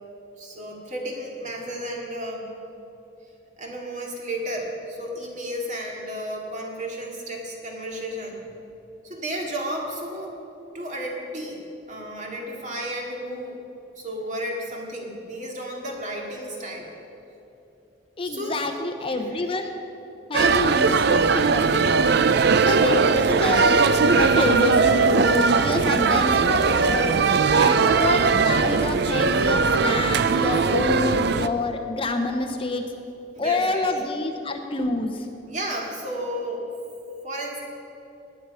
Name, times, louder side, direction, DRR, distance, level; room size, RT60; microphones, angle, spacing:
voice 1, 0.4-2.5 3.6-8.4 9.0-10.4 10.7-11.6 11.9-13.6 14.0-16.9 18.2-18.8 19.1-19.5 22.9-23.3 27.6-27.8 33.3-33.9 35.5-36.7 37.2-37.6, right 1 dB, 40° right, -1 dB, 2.3 m, -33 dB
voice 2, 18.2-19.7 20.3-21.9 22.5-23.7 24.1-27.2 27.5-32.8 33.4-35.3, left 2 dB, 30° left, 5 dB, 0.7 m, -27 dB
sound 1, 20.3-31.5, right 4 dB, 55° right, 0.5 m, -19 dB
17.5 x 10.0 x 5.6 m, 2.9 s
head